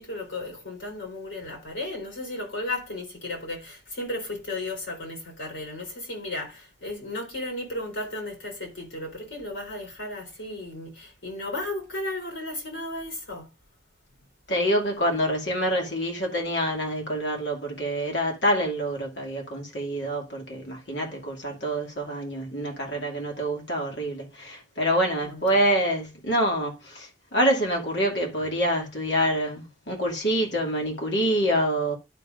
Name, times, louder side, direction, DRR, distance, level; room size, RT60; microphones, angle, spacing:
voice 1, 0.0-13.5 25.2-25.7, left 2 dB, 90° left, 3.7 m, -34 dB
voice 2, 14.5-31.9, equal, 70° left, 2.5 m, -26 dB
11.5 x 5.3 x 2.6 m
head